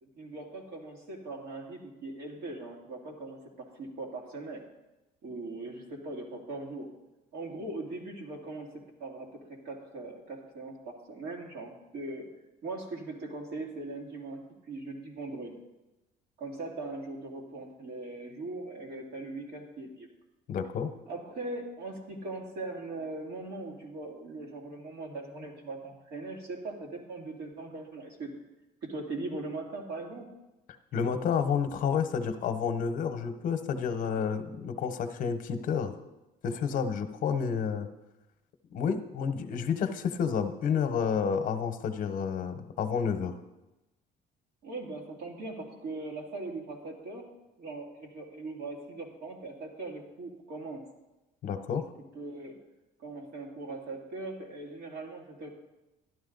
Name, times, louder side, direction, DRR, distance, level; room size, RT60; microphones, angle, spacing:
voice 1, 0.0-4.6 5.2-6.9 7.3-12.3 12.6-15.5 16.4-20.1 21.1-28.3 28.8-30.3 44.6-47.3 47.6-50.8 51.8-51.9 52.1-52.6 53.0-55.5, right 2 dB, 65° right, 0 dB, 2.5 m, -40 dB
voice 2, 20.5-20.9 30.9-36.0 36.4-37.9 38.7-43.3 51.4-51.9, left 6 dB, 50° left, 8 dB, 0.9 m, -30 dB
12.5 x 11.0 x 3.9 m, 0.99 s
cardioid pair, 165°, 17 cm